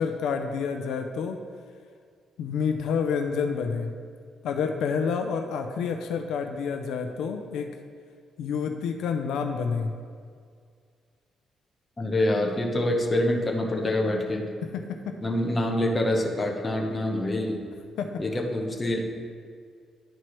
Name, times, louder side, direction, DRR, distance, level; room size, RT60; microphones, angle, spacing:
voice 1, 0.0-1.4 2.4-3.9 4.4-7.7 8.4-9.9 15.0-15.1 18.0-18.1, left 6 dB, 85° left, 5 dB, 0.5 m, -28 dB
voice 2, 12.0-14.5 15.2-17.6 18.2-19.0, left 1 dB, 20° left, 1 dB, 0.9 m, -26 dB
11.0 x 4.4 x 3.1 m, 2.1 s
cardioid pair, 135°, 0 cm